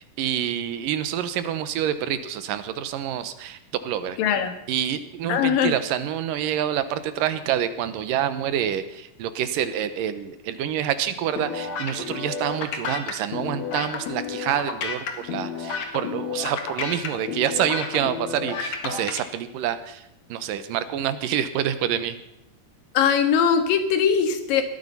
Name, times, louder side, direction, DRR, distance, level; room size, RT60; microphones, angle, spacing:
voice 1, 0.0-4.2 4.7-22.2, right 10 dB, 80° right, 12 dB, 2.6 m, -27 dB
voice 2, 4.2-4.5 5.3-5.7 22.9-24.6, left 7 dB, 80° left, 9 dB, 3.2 m, -20 dB
sound 1, 11.4-19.2, left 6 dB, 55° left, 2.9 m, -31 dB
19.5 x 13.0 x 5.6 m, 0.83 s
omnidirectional pair, 3.9 m